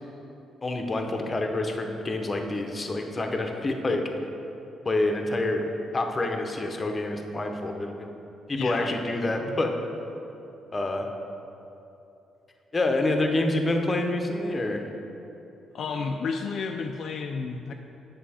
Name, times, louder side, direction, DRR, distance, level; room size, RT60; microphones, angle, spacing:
voice 1, 0.6-4.0 4.8-5.6 5.9-8.1 8.5-9.7 10.7-11.1 12.7-14.8, left 2 dB, 25° left, 3 dB, 0.8 m, -27 dB
voice 2, 8.5-8.9 15.7-17.7, left 4 dB, 65° left, 3 dB, 0.4 m, -31 dB
7.6 x 5.7 x 4.3 m, 2.9 s
cardioid pair, 90°, 0 cm